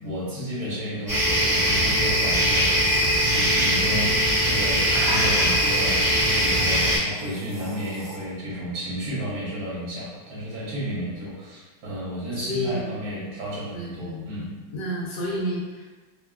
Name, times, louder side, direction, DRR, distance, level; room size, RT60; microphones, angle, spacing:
voice 1, 0.0-4.1 4.4-14.5, equal, 60° right, -7 dB, 1.2 m, -32 dB
sound 1, 1.1-7.0, equal, 5° right, 0.7 m, -21 dB
sound 2, 2.8-3.4 4.4-5.8 6.9-8.2, right 1 dB, 85° right, 1.3 m, -35 dB
voice 2, 12.4-12.9 13.7-15.9, equal, 80° left, -4 dB, 1.4 m, -31 dB
3.3 x 2.3 x 2.2 m, 1.2 s
omnidirectional pair, 2.0 m